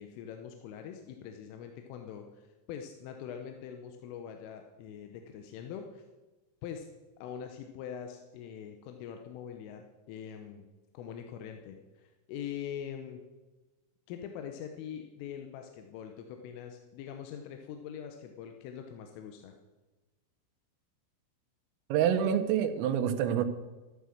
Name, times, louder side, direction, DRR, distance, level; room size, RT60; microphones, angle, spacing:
voice 1, 0.0-6.0 6.6-6.9 7.2-10.7 10.9-13.2 14.1-19.5, left 8 dB, 80° left, 5 dB, 3.4 m, -43 dB
voice 2, 21.9-23.5, right 9 dB, 85° right, 7 dB, 3.6 m, -27 dB
14.0 x 9.7 x 6.5 m, 1.2 s
omnidirectional pair, 5.8 m